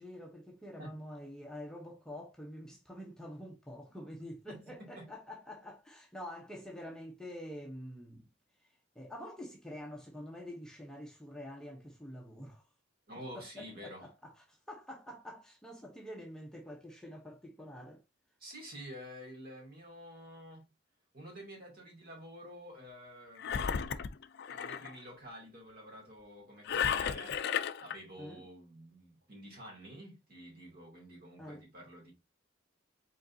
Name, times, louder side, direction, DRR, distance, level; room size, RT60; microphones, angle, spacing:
voice 1, 0.0-8.2 9.0-12.6 13.3-18.0 28.2-28.4 31.4-31.6, equal, 5° left, 0.7 m, -47 dB
voice 2, 4.5-5.1 13.1-14.1 18.4-20.7 21.1-23.8 24.5-27.4 27.8-32.1, equal, 50° right, 2.4 m, -49 dB
Engine, 23.4-24.9 26.7-28.0, left 7 dB, 55° left, 0.4 m, -33 dB
5.1 x 4.0 x 2.6 m
head